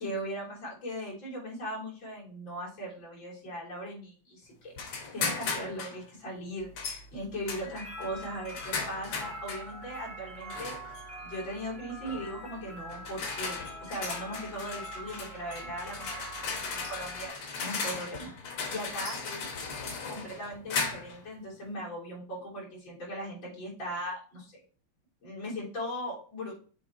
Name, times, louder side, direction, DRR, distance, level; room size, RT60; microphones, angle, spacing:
voice 1, 0.0-4.7 5.1-10.8 11.2-18.3 18.7-19.4 20.1-24.6 25.2-26.6, equal, 60° left, -5 dB, 4.2 m, -39 dB
sound 1, 4.8-6.0 6.8-7.0 7.5-9.7 10.5-11.0 12.1-12.3 12.9-21.2, left 4 dB, 85° left, 2.2 m, -36 dB
sound 2, 6.6-17.3, equal, ahead, 1.9 m, -44 dB
7.3 x 3.4 x 4.4 m, 0.39 s
omnidirectional pair, 2.4 m